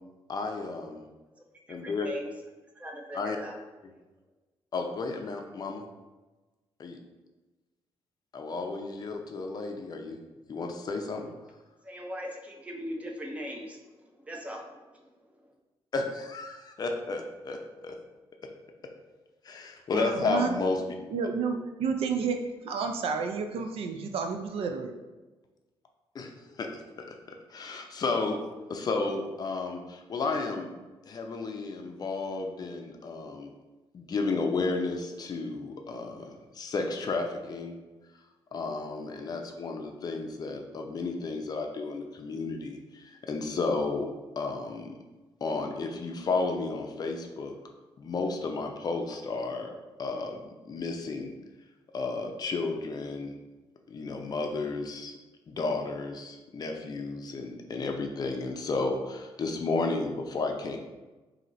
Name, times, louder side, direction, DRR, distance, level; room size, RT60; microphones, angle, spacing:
voice 1, 0.3-1.0 1.7-2.1 3.1-3.4 4.7-5.8 6.8-7.0 8.3-10.2 10.5-11.3 15.9-18.0 19.4-20.8 26.1-26.8 27.1-28.4 28.7-30.7 31.0-33.5 33.9-37.8 38.5-44.1 44.4-45.0 45.4-47.5 48.0-49.7 50.0-51.3 51.9-53.4 53.9-55.2 55.5-60.8, left 3 dB, 40° left, 3 dB, 0.5 m, -32 dB
voice 2, 1.8-2.3 2.7-3.6 11.8-15.5, equal, 15° right, 0 dB, 0.7 m, -40 dB
voice 3, 19.9-20.5 21.1-22.4 22.6-24.9, right 5 dB, 70° right, 5 dB, 0.5 m, -30 dB
4.2 x 2.8 x 3.9 m, 1.2 s
cardioid pair, 135°, 10 cm